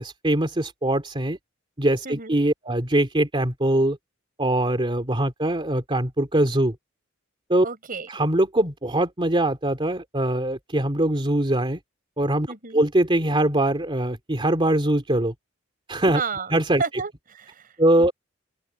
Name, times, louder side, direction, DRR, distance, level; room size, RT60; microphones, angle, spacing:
voice 1, 0.0-1.4 1.8-4.0 4.4-6.8 7.5-7.7 8.1-11.8 12.2-15.3 15.9-16.2 16.5-16.8 17.8-18.1, right 1 dB, 25° right, 2.6 m, -22 dB
voice 2, 2.0-2.4 7.6-8.1 12.5-12.8 16.1-16.5 16.8-18.1, right 5 dB, 45° right, 5.5 m, -32 dB
open air
head